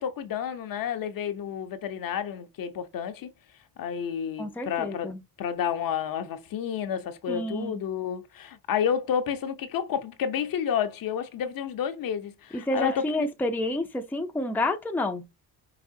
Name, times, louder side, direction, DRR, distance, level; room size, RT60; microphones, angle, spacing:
voice 1, 0.0-3.3 3.8-5.1 5.4-13.3, left 8 dB, 55° left, 0.7 m, -30 dB
voice 2, 4.4-5.2 7.3-7.8 12.5-15.2, left 2 dB, 5° left, 0.5 m, -29 dB
4.9 x 2.9 x 2.6 m
cardioid pair, 115°, 41 cm